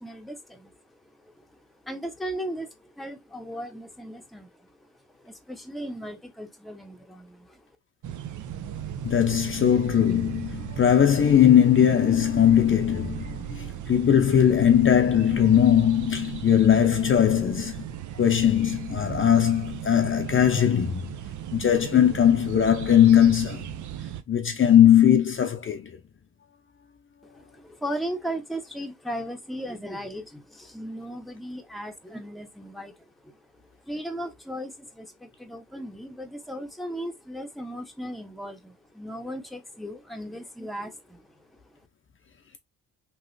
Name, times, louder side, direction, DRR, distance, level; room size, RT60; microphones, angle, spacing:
voice 1, 0.0-7.6 27.2-33.4 33.8-41.7, equal, ahead, 0.8 m, -37 dB
sound 1, 8.0-24.2, right 10 dB, 60° right, 0.6 m, -37 dB
voice 2, 9.0-17.9 18.2-21.0 21.5-23.7 24.3-26.0, left 9 dB, 35° left, 0.6 m, -20 dB
3.1 x 2.8 x 2.6 m
supercardioid pair, 60°, 34 cm